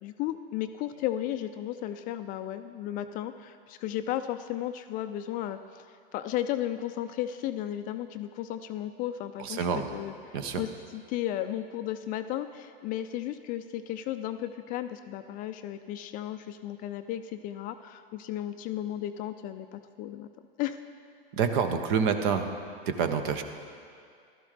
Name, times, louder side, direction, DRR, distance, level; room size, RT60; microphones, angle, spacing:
voice 1, 0.0-9.7 9.9-20.3 20.6-20.8, left 12 dB, 30° left, 10 dB, 0.4 m, -34 dB
voice 2, 9.4-9.9 10.3-10.6 21.3-22.5 22.9-23.4, right 6 dB, 55° right, 8 dB, 1.1 m, -27 dB
15.0 x 12.5 x 3.3 m, 2.2 s
hypercardioid pair, 100°, 29 cm